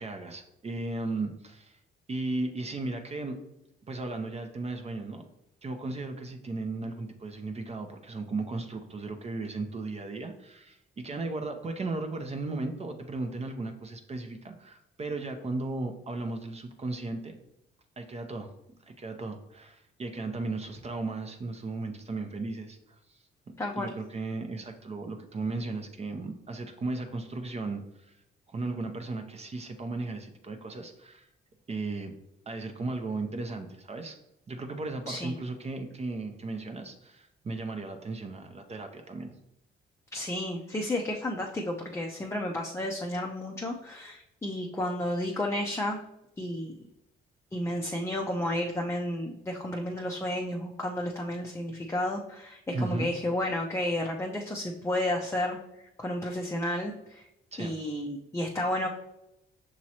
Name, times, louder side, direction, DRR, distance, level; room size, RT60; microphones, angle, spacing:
voice 1, 0.0-1.8 2.1-3.4 3.9-5.2 5.6-17.3 18.0-18.5 18.9-23.2 23.8-28.2 28.5-31.3 31.7-32.1 32.5-34.2 34.5-39.4 52.7-53.1 57.5-57.7, right 3 dB, 30° right, 5 dB, 0.6 m, -35 dB
voice 2, 23.6-23.9 35.1-35.3 40.1-46.0 46.4-46.7 47.5-57.3 57.6-58.9, left 1 dB, 15° left, 0 dB, 0.5 m, -32 dB
6.1 x 3.0 x 2.8 m, 0.87 s
cardioid pair, 90°, 20 cm